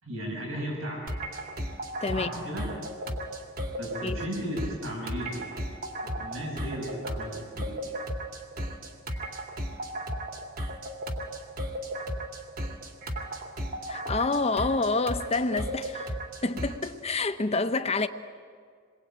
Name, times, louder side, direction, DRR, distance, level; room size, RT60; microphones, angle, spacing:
voice 1, 0.0-1.1 2.1-2.7 3.8-5.5 6.0-7.9, equal, 80° right, 7.0 m, -35 dB
sound 1, 1.1-17.0, equal, 45° right, 2.5 m, -35 dB
voice 2, 2.0-2.5 4.0-4.2 13.9-16.2 16.4-18.1, left 3 dB, 30° left, 1.0 m, -28 dB
27.5 x 21.0 x 9.0 m
head